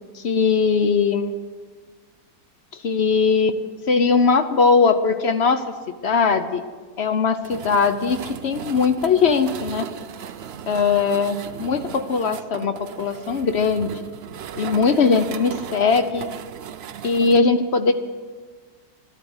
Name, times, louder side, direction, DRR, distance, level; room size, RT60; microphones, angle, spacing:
voice 1, 0.1-1.3 2.7-3.6 3.9-5.7 6.0-6.6 7.0-9.9 10.7-13.9 14.6-16.3 17.0-17.9, left 5 dB, 55° left, 9 dB, 0.8 m, -20 dB
sound 1, 7.4-17.4, right 8 dB, 85° right, 0.5 m, -36 dB
12.5 x 12.0 x 7.9 m, 1.5 s
omnidirectional pair, 1.8 m